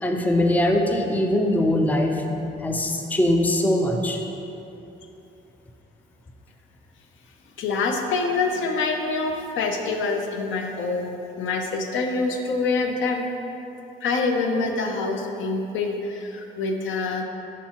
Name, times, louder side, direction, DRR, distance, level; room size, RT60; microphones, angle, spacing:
voice 1, 0.0-2.2 2.6-4.2, left 1 dB, 10° left, 3 dB, 0.4 m, -21 dB
voice 2, 7.6-13.3 14.0-17.2, left 3 dB, 75° left, 3 dB, 0.6 m, -26 dB
6.0 x 5.6 x 2.9 m, 2.9 s
cardioid pair, 90°, 20 cm